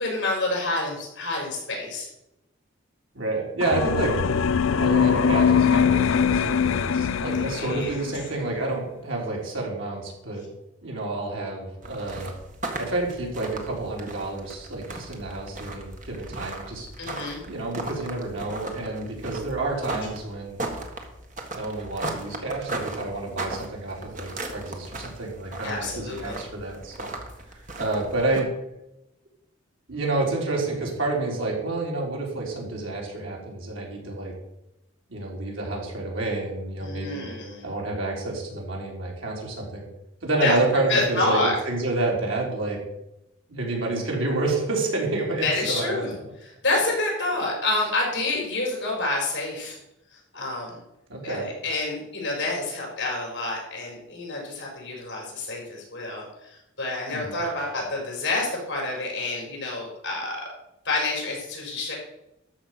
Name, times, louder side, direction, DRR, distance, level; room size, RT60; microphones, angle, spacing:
voice 1, 0.0-2.1 7.4-8.0 17.0-17.4 25.6-26.4 36.8-37.6 40.4-40.6 40.9-41.5 45.4-46.1 46.5-49.8 50.1-50.8 51.2-60.4 60.8-61.9, left 2 dB, 55° left, -2 dB, 5.7 m, -28 dB
voice 2, 3.1-4.1 4.7-10.4 10.8-12.3 12.8-16.9 17.4-20.6 21.5-27.1 27.5-28.5 29.9-34.3 35.1-37.2 37.6-39.9 40.2-41.4 41.7-42.8 43.5-46.1 51.1-51.4 57.1-57.4, right 2 dB, 80° right, -2 dB, 4.0 m, -29 dB
sound 1, 3.6-8.3, left 7 dB, 80° left, 0.4 m, -22 dB
sound 2, 11.8-28.4, right 2 dB, 40° right, 1.6 m, -37 dB
13.0 x 5.9 x 7.7 m, 0.88 s
head